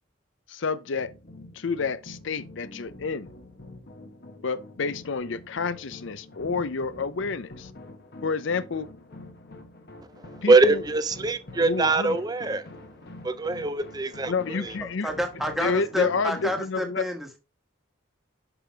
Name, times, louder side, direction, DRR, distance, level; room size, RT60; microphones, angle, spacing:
voice 1, 0.5-1.1 1.5-3.3 4.4-7.7 8.2-8.9 10.4-10.8 11.6-12.2 14.3-15.1 15.6-17.0, left 4 dB, 65° left, 0.5 m, -29 dB
sound 1, 0.9-16.6, left 2 dB, 50° left, 1.1 m, -46 dB
voice 2, 10.2-12.7 13.2-14.7, right 3 dB, 20° right, 0.4 m, -23 dB
voice 3, 15.0-17.4, equal, ahead, 1.2 m, -29 dB
6.2 x 5.0 x 4.0 m
head